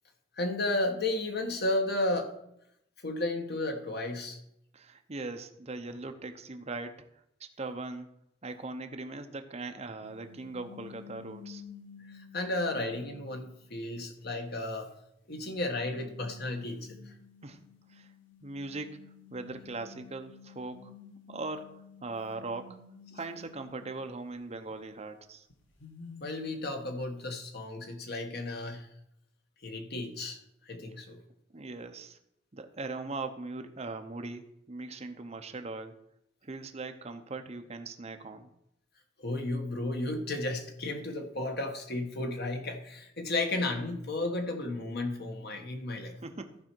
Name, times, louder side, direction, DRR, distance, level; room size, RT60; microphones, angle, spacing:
voice 1, 0.4-2.3 3.0-4.4 12.1-14.9 15.3-17.1 26.2-28.9 29.6-30.4 30.7-31.2 39.2-46.1, left 2 dB, 55° left, 4 dB, 1.3 m, -33 dB
voice 2, 4.7-7.0 7.4-8.1 8.4-11.6 17.4-17.6 17.9-18.1 18.4-19.0 19.3-20.9 21.3-21.7 22.0-22.8 23.1-25.5 31.5-32.2 32.5-36.0 36.4-38.5 46.2-46.6, right 3 dB, 35° right, 6 dB, 0.7 m, -40 dB
sound 1, 10.0-13.8 14.2-14.4 15.7-24.8 25.1-25.2 25.5-26.8, left 5 dB, 75° left, 1.5 m, -52 dB
14.5 x 4.9 x 4.5 m, 0.78 s
head